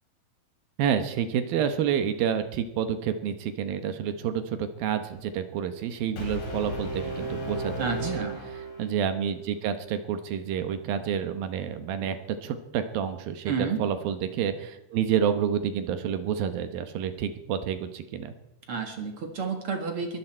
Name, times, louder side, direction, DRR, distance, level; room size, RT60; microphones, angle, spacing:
voice 1, 0.8-8.3 8.5-18.3, right 8 dB, 70° right, 9 dB, 2.6 m, -29 dB
Brass instrument, 6.2-9.2, right 1 dB, 45° left, 3.5 m, -34 dB
voice 2, 7.8-8.4 13.5-13.8 18.7-20.2, right 5 dB, 45° right, 4 dB, 2.0 m, -30 dB
22.5 x 14.0 x 4.5 m, 0.95 s
omnidirectional pair, 4.7 m